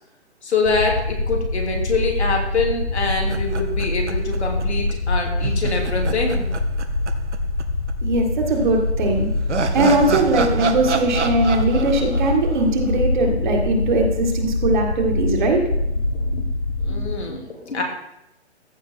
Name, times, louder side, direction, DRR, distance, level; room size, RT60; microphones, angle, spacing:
voice 1, 0.4-6.5 12.0-12.1 13.2-13.4 15.1-15.2 16.1-16.4 16.8-17.8, left 3 dB, 70° left, 0 dB, 2.7 m, -25 dB
sound 1, 0.6-17.2, left 2 dB, 50° left, 1.3 m, -24 dB
sound 2, 3.3-4.6 4.9-5.0 5.4-7.6 7.9-8.0 9.0-13.3, right 5 dB, 85° right, 1.0 m, -28 dB
voice 2, 8.0-9.3 9.7-15.6, right 2 dB, 45° right, 2 dB, 1.9 m, -20 dB
14.5 x 5.0 x 4.4 m, 0.85 s
figure-of-eight pair, 145°, 34 cm